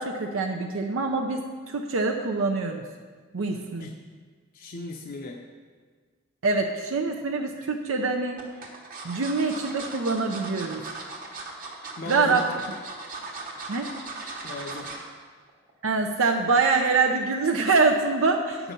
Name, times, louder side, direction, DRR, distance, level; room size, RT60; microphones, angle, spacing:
voice 1, 0.0-2.8 3.3-3.9 6.4-8.4 9.0-10.8 12.1-12.4 13.7-13.9 15.8-18.7, right 4 dB, 80° right, 2 dB, 0.6 m, -25 dB
voice 2, 4.5-5.4 12.0-12.4 14.4-14.9 18.6-18.7, left 3 dB, 45° left, 1 dB, 0.6 m, -36 dB
sound 1, 7.1-7.7 8.4-15.1 15.5-15.7 16.0-16.1, right 3 dB, 45° right, 1.2 m, -38 dB
8.3 x 5.9 x 5.3 m, 1.5 s
head